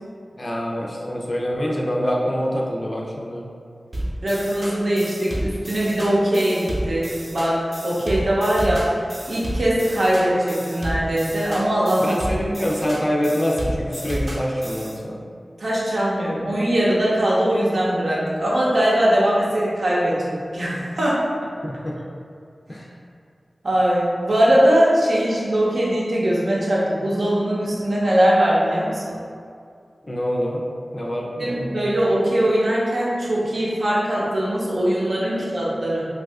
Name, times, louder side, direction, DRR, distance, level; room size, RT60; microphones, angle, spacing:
voice 1, 0.4-3.4 12.0-15.2 21.6-22.0 22.7-22.9 30.0-30.6 30.9-31.8, equal, 35° left, -2 dB, 0.5 m, -25 dB
sound 1, 3.9-15.0, right 1 dB, 40° right, 0.8 m, -31 dB
voice 2, 4.2-8.9 9.3-12.5 15.6-21.2 23.6-29.2 31.4-36.1, right 1 dB, 75° right, -6 dB, 0.7 m, -21 dB
2.7 x 2.4 x 3.4 m, 2.3 s
wide cardioid pair, 75°, 0 cm